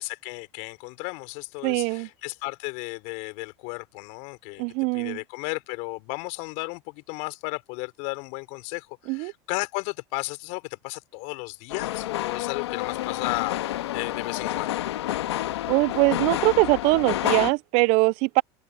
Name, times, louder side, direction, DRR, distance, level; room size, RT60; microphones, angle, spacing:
voice 1, 0.0-4.6 4.9-14.8, left 29 dB, 65° left, 4.7 m, -34 dB
voice 2, 1.6-2.1 4.6-5.2 9.1-9.3 15.7-18.4, right 27 dB, 60° right, 0.4 m, -22 dB
sound 1, 11.7-17.5, left 14 dB, 90° left, 1.7 m, -29 dB
supercardioid pair, 105°, 14 cm